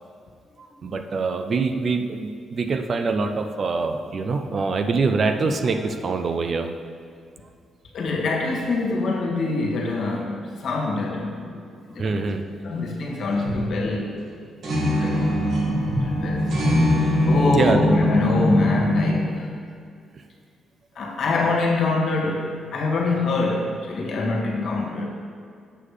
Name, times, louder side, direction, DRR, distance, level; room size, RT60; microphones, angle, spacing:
voice 1, 0.6-6.7 12.0-12.4 17.5-17.9 20.1-20.2, right 4 dB, 50° right, 7 dB, 0.6 m, -24 dB
voice 2, 7.9-11.6 11.9-12.2 12.6-14.2 14.6-15.4 16.0-16.7 17.0-19.5 21.0-25.1, left 3 dB, 65° left, 0 dB, 1.7 m, -25 dB
sound 1, 13.3-13.7 14.2-14.3 14.6-19.2, left 1 dB, 70° right, 2.0 m, -22 dB
7.7 x 6.5 x 5.0 m, 2.2 s
cardioid pair, 80°, 0 cm